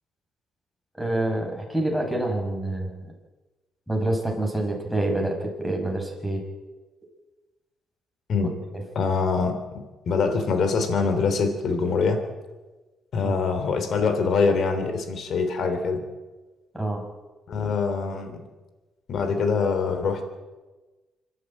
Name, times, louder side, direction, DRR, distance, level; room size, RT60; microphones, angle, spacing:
voice 1, 1.0-3.0 3.9-6.4 8.7-8.8 13.2-13.4 16.7-17.0, right 1 dB, ahead, 2 dB, 5.9 m, -27 dB
voice 2, 8.9-12.3 13.1-16.0 17.5-18.4 19.1-20.2, left 4 dB, 60° left, 8 dB, 3.3 m, -24 dB
25.5 x 11.5 x 9.1 m, 1.2 s
cardioid pair, 90°, 0 cm